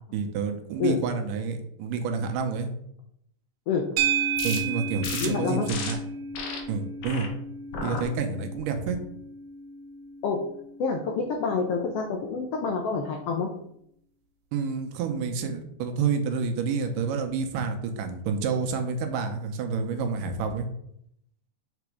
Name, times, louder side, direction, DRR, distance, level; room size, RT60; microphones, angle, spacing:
voice 1, 0.1-2.7 4.4-6.0 6.7-7.3 7.8-9.0 14.5-20.7, right 5 dB, 85° right, 5 dB, 2.4 m, -29 dB
sound 1, 4.0-12.4, right 6 dB, 70° right, 1.6 m, -33 dB
sound 2, 4.4-4.6 5.0-5.3 5.7-5.9 6.3-6.6 7.0-7.3 7.7-8.0 8.5-8.9, left 4 dB, 65° left, 1.9 m, -34 dB
voice 2, 5.2-5.7 10.2-10.4 10.8-13.5, left 5 dB, 90° left, 2 dB, 1.3 m, -27 dB
5.9 x 4.0 x 4.7 m, 0.72 s
omnidirectional pair, 3.7 m